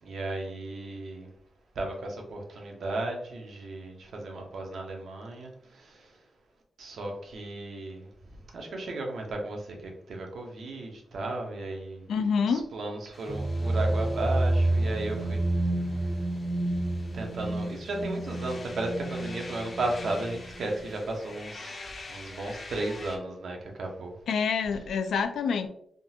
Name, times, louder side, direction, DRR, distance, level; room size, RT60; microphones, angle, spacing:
voice 1, 0.0-1.3 1.8-6.1 6.8-12.1 12.4-15.4 17.1-21.8 22.1-24.1, right 2 dB, 70° right, 1 dB, 0.8 m, -35 dB
voice 2, 12.1-12.6 24.3-25.7, left 6 dB, 85° left, 8 dB, 0.3 m, -27 dB
sound 1, 13.1-23.2, left 2 dB, 40° left, 0.5 m, -46 dB
sound 2, 13.3-21.0, right 1 dB, 20° right, 0.4 m, -29 dB
3.6 x 2.4 x 2.7 m, 0.72 s
wide cardioid pair, 130°, 0 cm